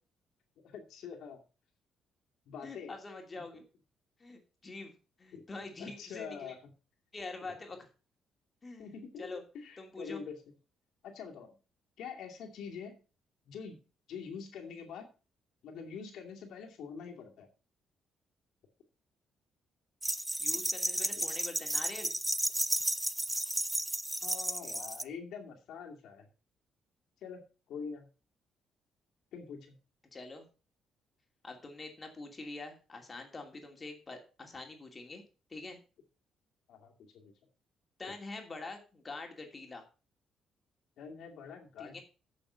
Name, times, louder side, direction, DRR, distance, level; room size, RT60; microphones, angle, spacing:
voice 1, 0.6-1.4 2.5-2.9 5.3-5.4 5.8-6.6 8.8-9.3 9.5-10.4 11.0-11.6 12.0-13.0 13.5-13.8 14.1-15.1 15.6-17.5 24.2-26.3 27.2-27.4 27.7-28.1 29.3-29.7 36.7-37.3 41.0-42.0, left 6 dB, 80° left, 2 dB, 2.4 m, -45 dB
voice 2, 2.6-3.6 4.2-6.5 7.1-7.9 8.6-9.4 9.8-10.2 20.4-22.1 30.1-30.5 31.4-35.2 35.5-35.8 38.0-39.8 41.8-42.0, left 3 dB, 30° left, 3 dB, 2.7 m, -45 dB
sound 1, 20.0-25.0, right 1 dB, 10° right, 0.5 m, -33 dB
8.8 x 6.4 x 5.7 m, 0.34 s
cardioid pair, 90°, 0 cm